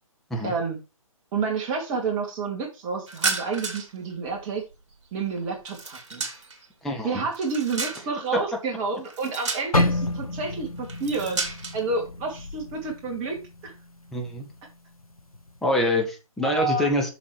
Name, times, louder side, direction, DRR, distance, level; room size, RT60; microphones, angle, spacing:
voice 1, 0.4-0.8 1.3-4.6 5.1-6.2 7.0-11.4 11.7-13.7 16.4-16.9, right 4 dB, 20° right, 1 dB, 2.3 m, -29 dB
sound 1, 3.1-4.0 4.3-6.7 7.1-8.3 9.1-10.0 10.8-11.8, right 4 dB, 55° right, 2.9 m, -32 dB
voice 2, 6.8-7.2 14.1-14.5 15.6-17.1, left 1 dB, ahead, -1 dB, 1.6 m, -25 dB
sound 2, 9.7-13.8 14.1-14.4 15.0-15.4, left 2 dB, 85° left, 1.0 m, -29 dB
7.2 x 6.6 x 4.9 m, 0.28 s
figure-of-eight pair, 140°, 18 cm